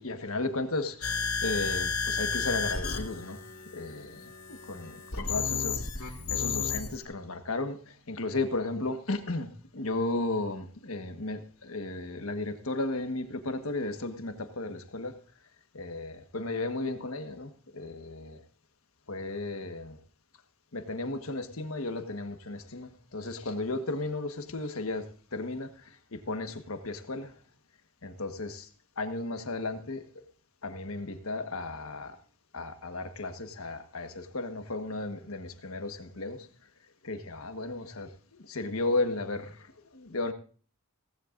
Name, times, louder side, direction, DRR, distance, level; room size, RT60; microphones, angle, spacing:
voice 1, 0.0-3.4 3.7-15.1 15.7-18.4 19.1-20.0 20.7-27.3 28.0-28.7 29.0-30.1 30.6-32.2 32.5-36.5 37.0-40.3, left 2 dB, 70° left, 7 dB, 1.5 m, -34 dB
sound 1, 1.0-7.0, left 5 dB, 85° left, 2.7 m, -32 dB
17.0 x 15.5 x 2.6 m, 0.41 s
head